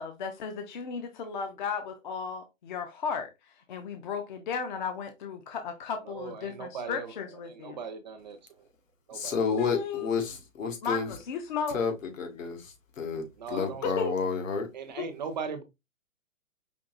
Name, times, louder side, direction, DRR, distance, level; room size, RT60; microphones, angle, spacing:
voice 1, 0.0-3.3 3.7-7.8 9.5-10.1 10.8-11.8 13.5-13.6 14.0-14.1 15.0-15.1, left 6 dB, 35° left, 0.5 m, -35 dB
voice 2, 6.1-7.1 7.5-8.6 9.1-9.4 13.4-14.1 14.7-15.6, right 5 dB, 35° right, 0.5 m, -39 dB
voice 3, 9.1-11.1 11.7-11.9 12.2-13.2 13.5-14.7, left 5 dB, 70° left, 1.5 m, -30 dB
5.2 x 2.8 x 2.4 m
hypercardioid pair, 150°, 40 cm